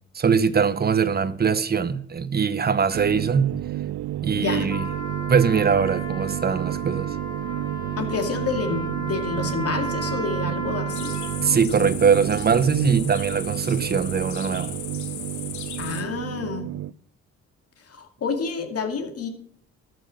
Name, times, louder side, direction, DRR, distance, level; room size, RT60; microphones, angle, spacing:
voice 1, 0.1-3.5 4.2-4.9 5.3-7.2 11.4-14.7, right 6 dB, 30° right, 0.9 m, -22 dB
sound 1, 2.9-16.9, right 14 dB, 70° right, 0.5 m, -31 dB
voice 2, 4.3-4.7 8.0-11.1 15.8-16.7 17.8-19.3, left 4 dB, 50° left, 2.3 m, -29 dB
Trumpet, 4.7-11.7, left 1 dB, 15° left, 1.6 m, -35 dB
sound 2, 10.9-16.0, left 9 dB, 70° left, 1.4 m, -37 dB
13.0 x 6.2 x 6.3 m
cardioid pair, 90°, 30 cm